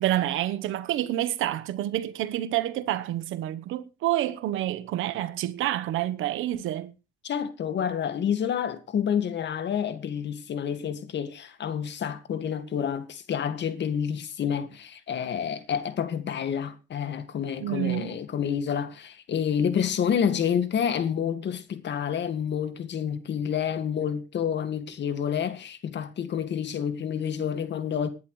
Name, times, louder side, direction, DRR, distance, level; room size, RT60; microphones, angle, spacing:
voice 1, 0.0-6.9 17.6-18.2, right 13 dB, 90° right, 1.1 m, -28 dB
voice 2, 7.2-28.1, left 8 dB, 60° left, 2.1 m, -29 dB
19.5 x 10.5 x 3.2 m
cardioid pair, 90°, 20 cm